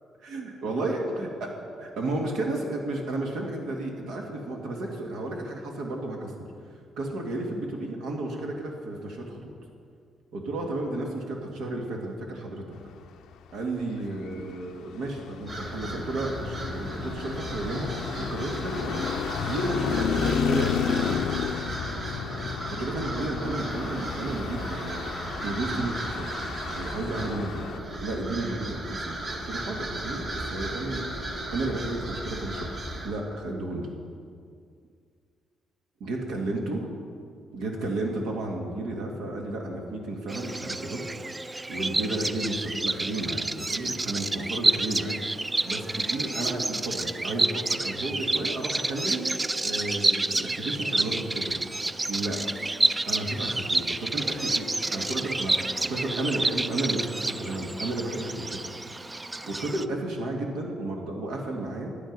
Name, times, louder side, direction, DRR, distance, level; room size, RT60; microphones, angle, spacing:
voice 1, 0.2-1.3 2.0-6.5 7.0-9.5 10.3-12.6 13.5-19.0 19.4-21.3 22.7-26.3 26.7-27.7 28.0-31.2 31.5-32.7 33.0-33.9 36.0-36.9 37.5-41.1 41.7-49.2 49.6-51.6 52.1-52.5 53.0-58.6 59.5-61.9, right 2 dB, 85° right, 1 dB, 1.8 m, -32 dB
Traffic noise roadway noise, 14.1-27.8, left 7 dB, 80° left, 0.5 m, -32 dB
sound 1, 15.5-33.1, right 1 dB, 45° right, 1.7 m, -35 dB
Bird vocalization bird call bird song, 40.3-59.8, right 2 dB, 20° right, 0.3 m, -29 dB
10.5 x 9.0 x 5.3 m, 2.2 s
cardioid pair, 90°, 0 cm